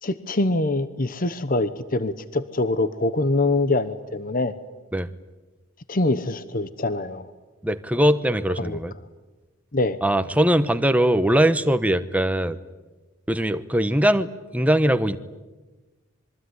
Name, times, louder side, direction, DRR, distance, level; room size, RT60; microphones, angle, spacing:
voice 1, 0.0-4.5 5.9-7.3 8.6-8.8 9.7-10.0, left 2 dB, 40° left, 13 dB, 1.0 m, -24 dB
voice 2, 7.6-8.9 10.0-12.6 13.3-15.2, right 1 dB, 5° right, 10 dB, 1.0 m, -21 dB
26.5 x 23.0 x 9.7 m, 1.2 s
head